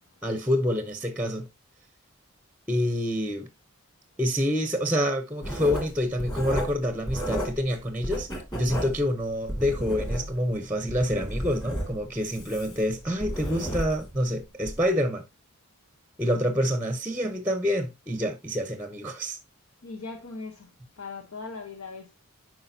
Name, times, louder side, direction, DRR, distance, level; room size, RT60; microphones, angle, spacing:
voice 1, 0.2-1.5 2.7-3.5 4.2-15.2 16.2-19.4, equal, 10° right, 0.7 m, -27 dB
Writing, 5.4-7.7 8.0-10.5 10.9-14.2 14.6-14.8, equal, 20° left, 2.3 m, -33 dB
voice 2, 19.8-20.7 21.0-22.1, left 4 dB, 85° left, 1.0 m, -39 dB
10.0 x 4.7 x 2.7 m
head